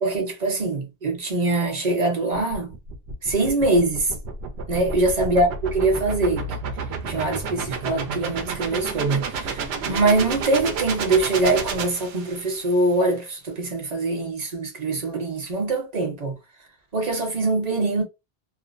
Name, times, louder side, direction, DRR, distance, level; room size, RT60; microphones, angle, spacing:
voice 1, 0.0-2.7 3.2-4.1 4.7-5.5 5.7-6.5 7.1-16.3 16.9-18.0, right 2 dB, 45° right, 0.8 m, -23 dB
sound 1, 2.3-12.6, right 4 dB, 85° right, 0.8 m, -31 dB
2.5 x 2.0 x 2.5 m
omnidirectional pair, 1.0 m